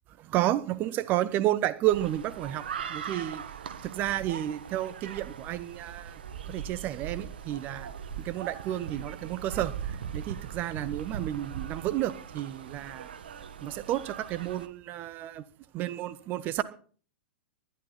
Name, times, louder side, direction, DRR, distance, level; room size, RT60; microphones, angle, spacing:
voice 1, 0.2-3.4 3.8-6.2 6.5-7.9 8.2-13.1 13.6-15.4 15.7-16.6, right 14 dB, 35° right, 1.2 m, -31 dB
sound 1, 1.8-14.7, right 8 dB, 60° right, 1.6 m, -40 dB
20.0 x 12.0 x 4.2 m
figure-of-eight pair, 100°, 6 cm